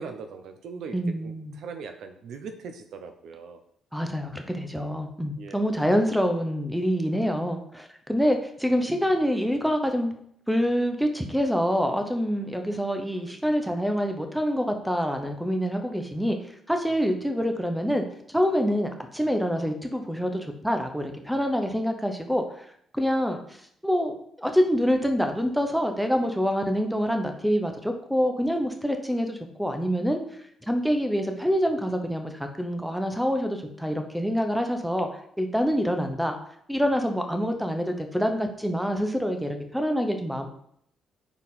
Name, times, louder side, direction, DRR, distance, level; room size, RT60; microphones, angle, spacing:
voice 1, 0.0-3.6 5.4-5.7, right 5 dB, 75° right, 7 dB, 0.7 m, -40 dB
voice 2, 0.9-1.5 3.9-10.1 10.5-16.4 16.7-22.7 22.9-23.4 23.8-30.2 30.7-35.1 35.4-36.3 36.7-40.5, equal, ahead, 5 dB, 0.9 m, -26 dB
5.6 x 4.5 x 4.1 m, 0.68 s
cardioid pair, 90°, 0 cm